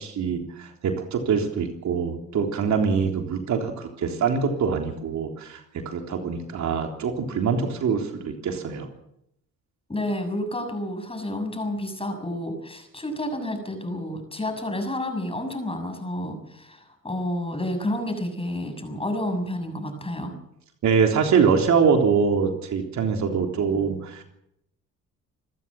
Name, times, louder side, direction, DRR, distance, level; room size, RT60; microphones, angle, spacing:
voice 1, 0.0-8.9 20.8-24.2, right 6 dB, 70° right, 3 dB, 3.6 m, -24 dB
voice 2, 9.9-20.3, left 1 dB, 20° left, 6 dB, 6.8 m, -30 dB
27.5 x 14.5 x 7.6 m, 0.80 s
cardioid pair, 90°, 30 cm